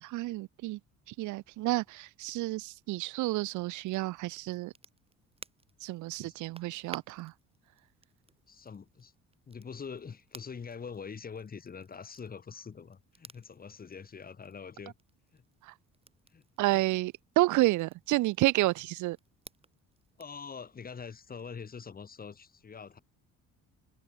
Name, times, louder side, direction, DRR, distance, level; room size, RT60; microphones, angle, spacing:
voice 1, 0.0-0.8 1.1-4.7 5.8-7.3 15.7-15.8 16.6-19.2, right 19 dB, 75° right, 0.6 m, -30 dB
Crackle, 3.8-20.4, right 3 dB, 20° right, 5.7 m, -56 dB
voice 2, 8.5-9.1 9.5-14.9 15.3-15.4 16.3-16.5 20.2-23.0, left 6 dB, 30° left, 2.1 m, -44 dB
cardioid pair, 125°, 30 cm